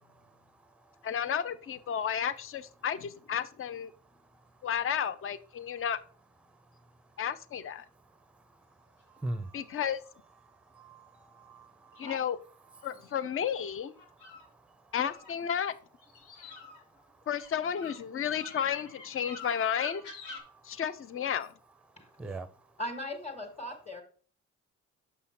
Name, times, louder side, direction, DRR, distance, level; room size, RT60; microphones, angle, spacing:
voice 1, 0.0-1.1 4.1-4.4 6.5-6.8 8.0-9.8 10.4-12.2 14.1-14.9 16.2-17.3 19.4-19.7 20.4-20.8 21.9-22.7, right 2 dB, 5° right, 0.6 m, -46 dB
voice 2, 1.0-3.9 4.6-6.0 7.2-7.8 9.5-10.0 12.0-12.4 12.8-13.9 14.9-15.7 17.3-20.0 20.6-21.5, left 8 dB, 45° left, 0.6 m, -32 dB
sound 1, 9.2-10.1 12.8-14.5 14.9-15.6 16.0-20.4, left 4 dB, 90° left, 1.8 m, -47 dB
voice 3, 22.8-24.0, left 1 dB, 20° left, 1.6 m, -38 dB
6.7 x 5.5 x 4.3 m
cardioid pair, 90°, 30 cm